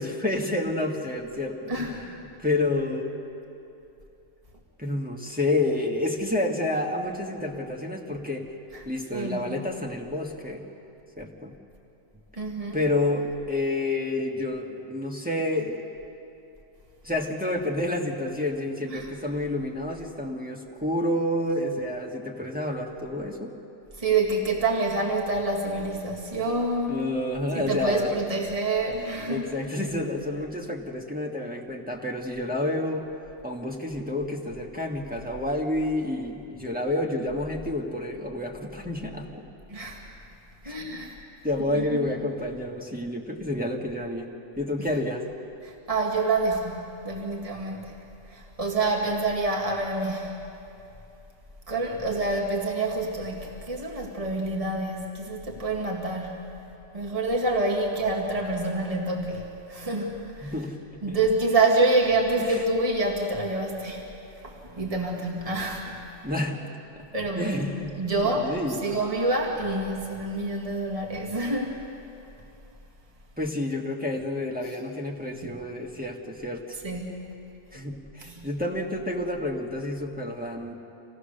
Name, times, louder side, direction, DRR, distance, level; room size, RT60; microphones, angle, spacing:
voice 1, 0.0-3.2 4.8-8.5 8.8-10.7 11.2-11.5 12.7-15.8 17.0-23.6 26.9-28.2 29.2-33.1 33.4-39.5 40.6-40.7 41.4-44.3 44.6-45.3 60.4-61.2 62.4-62.6 66.2-67.1 67.4-68.0 68.2-69.0 73.4-76.8 77.7-80.7, left 1 dB, 5° right, -1 dB, 1.5 m, -29 dB
voice 2, 9.1-9.5 12.4-12.8 18.9-19.1 24.0-27.0 27.5-29.4 39.7-40.0 40.7-41.1 41.7-42.1 45.6-47.9 48.3-50.3 51.7-56.5 56.9-60.5 61.0-64.0 64.4-65.9 67.1-67.6 68.0-68.6 68.8-71.8 75.4-75.6 76.8-77.1 78.2-78.5, right 2 dB, 30° right, -2 dB, 2.1 m, -27 dB
27.0 x 17.0 x 6.6 m, 2.8 s
omnidirectional pair, 1.2 m